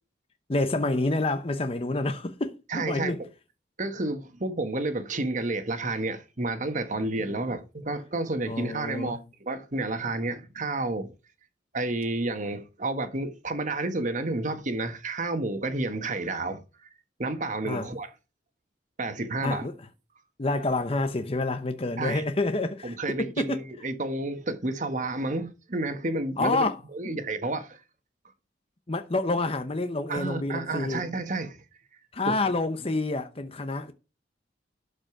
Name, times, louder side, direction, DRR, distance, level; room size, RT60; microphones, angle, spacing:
voice 1, 0.5-3.2 8.5-9.2 17.6-17.9 19.4-19.7 20.4-23.6 26.4-26.8 27.0-27.2 28.9-31.0 32.1-33.9, left 2 dB, 35° left, 0.8 m, -28 dB
voice 2, 2.7-3.1 3.8-11.1 11.7-16.6 17.2-18.1 19.0-19.7 22.0-22.2 22.8-26.6 26.9-27.8 30.1-31.6 32.3-32.4, right 2 dB, 45° right, 1.4 m, -30 dB
12.0 x 5.1 x 4.9 m
head